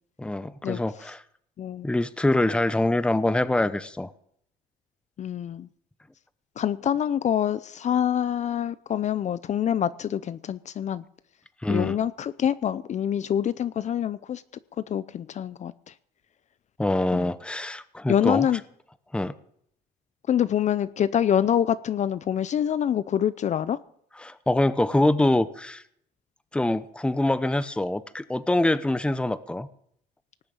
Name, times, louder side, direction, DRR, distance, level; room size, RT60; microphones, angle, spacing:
voice 1, 0.2-1.2 1.8-4.1 11.6-11.9 16.8-18.5 19.1-19.3 24.2-25.8 26.5-29.7, left 1 dB, 5° left, 14 dB, 0.8 m, -24 dB
voice 2, 5.2-5.7 6.6-11.0 11.7-14.4 14.9-15.9 17.1-17.3 18.1-18.6 20.3-23.8, left 9 dB, 45° left, 16 dB, 0.6 m, -26 dB
19.0 x 6.9 x 8.8 m, 0.67 s
cardioid pair, 110°, 17 cm